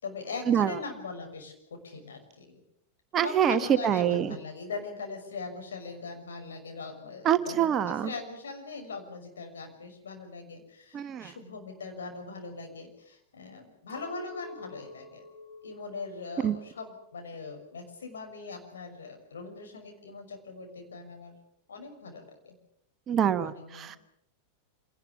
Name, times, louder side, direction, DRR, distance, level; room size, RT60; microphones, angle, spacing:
voice 1, 0.0-1.5 1.8-2.6 3.2-15.2 15.6-21.3 21.7-22.5 23.4-23.9, left 4 dB, 65° left, 3 dB, 6.2 m, -41 dB
voice 2, 3.1-4.4 7.2-8.1 10.9-11.3 16.4-16.5 23.1-24.0, right 9 dB, 30° right, 11 dB, 1.2 m, -25 dB
Chink clink, 13.9-18.2 18.6-19.2, left 3 dB, 40° left, 4.3 m, -50 dB
27.0 x 19.0 x 7.2 m, 0.71 s
figure-of-eight pair, 90°, 0 cm